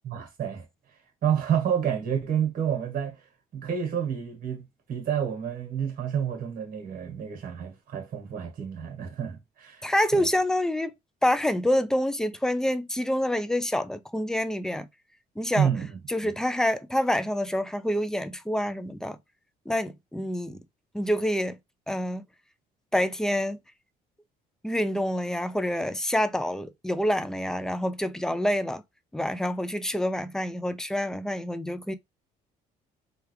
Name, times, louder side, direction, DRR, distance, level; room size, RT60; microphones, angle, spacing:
voice 1, 0.0-0.6 1.2-3.2 3.5-9.8 10.1-10.3 15.5-16.3 20.5-20.6, right 8 dB, 55° right, 1.4 m, -29 dB
voice 2, 9.8-10.9 11.2-14.9 15.4-15.7 16.1-19.2 19.7-20.6 20.9-21.6 21.9-22.2 22.9-23.6 24.6-28.8 29.1-31.9, left 1 dB, 5° left, 0.4 m, -27 dB
3.3 x 2.4 x 3.1 m
cardioid pair, 110°, 17 cm